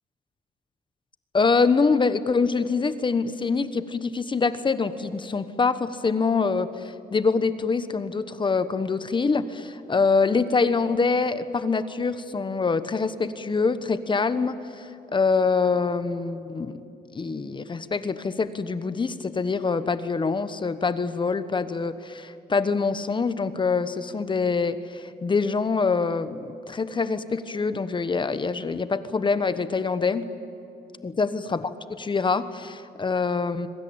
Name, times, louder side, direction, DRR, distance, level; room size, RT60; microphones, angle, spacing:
voice 1, 1.3-16.8 17.1-30.3 31.0-33.7, left 4 dB, 30° left, 12 dB, 1.2 m, -25 dB
25.5 x 23.5 x 8.8 m, 2.9 s
cardioid pair, 120°, 16 cm